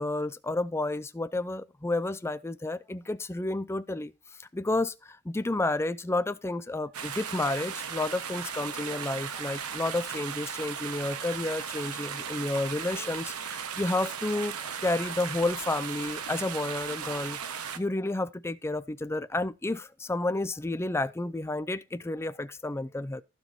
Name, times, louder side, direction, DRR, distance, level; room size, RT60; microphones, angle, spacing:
voice 1, 0.0-4.1 4.5-14.5 14.8-23.2, left 2 dB, 10° left, 0.4 m, -31 dB
sound 1, 6.9-17.8, right 7 dB, 85° right, 1.1 m, -37 dB
15.0 x 5.1 x 4.3 m
head